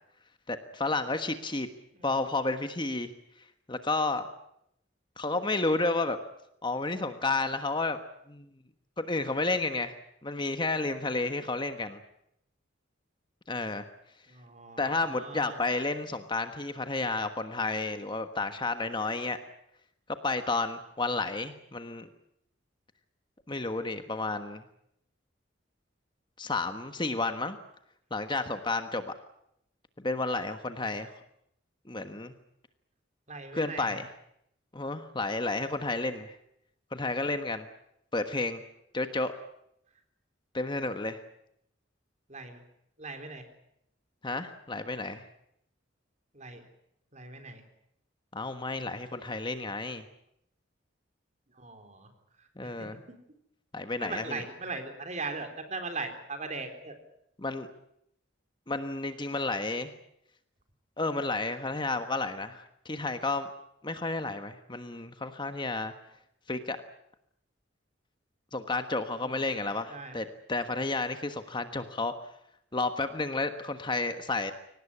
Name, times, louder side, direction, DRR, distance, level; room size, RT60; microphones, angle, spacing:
voice 1, 0.5-1.7 2.0-3.1 3.7-4.3 5.2-6.2 6.6-8.0 8.3-8.5 9.0-9.9 10.2-12.0 13.5-13.9 14.8-19.4 20.2-22.1 23.5-24.6 26.4-27.6 28.1-29.1 30.0-31.1 31.9-32.3 33.5-34.1 34.7-36.4 36.9-37.7 38.1-38.6 38.9-39.3 40.5-41.2 44.2-45.3 48.3-50.0 52.6-53.0 53.7-54.4 57.4-57.7 58.7-59.9 61.0-63.5 63.8-65.9 66.5-66.8 68.5-72.1 72.7-74.5, left 3 dB, 25° left, 8 dB, 1.3 m, -31 dB
voice 2, 14.3-15.6 33.3-34.0 42.3-42.6 43.0-43.4 46.3-46.6 47.1-47.6 51.6-52.1 52.8-52.9 54.0-57.0 69.9-70.2, right 3 dB, 40° right, 7 dB, 3.8 m, -39 dB
23.5 x 19.0 x 9.8 m, 0.76 s
head